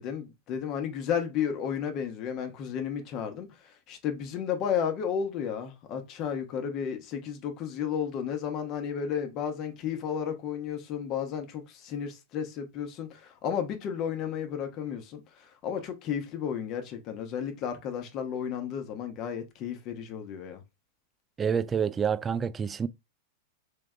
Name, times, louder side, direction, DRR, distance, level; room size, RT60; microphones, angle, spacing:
voice 1, 0.0-20.6, left 8 dB, 45° left, 1.0 m, -33 dB
voice 2, 21.4-22.9, right 7 dB, 20° right, 0.3 m, -28 dB
3.6 x 3.3 x 3.2 m
hypercardioid pair, 100°, 0 cm